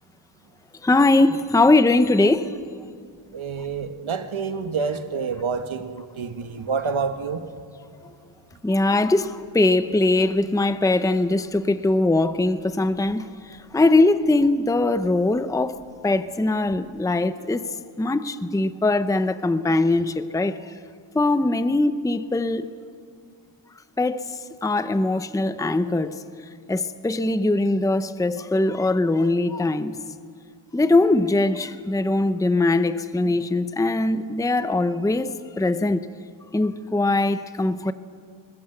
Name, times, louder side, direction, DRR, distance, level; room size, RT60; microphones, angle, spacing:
voice 1, 0.8-2.5 8.6-13.3 13.7-17.6 18.0-20.6 21.1-22.7 24.0-24.3 24.6-26.2 26.7-30.0 30.7-36.1 36.5-37.9, left 2 dB, 5° left, 0.7 m, -21 dB
voice 2, 3.3-7.4, right 5 dB, 85° right, 1.6 m, -28 dB
21.5 x 21.0 x 8.0 m
wide cardioid pair, 120°, 47 cm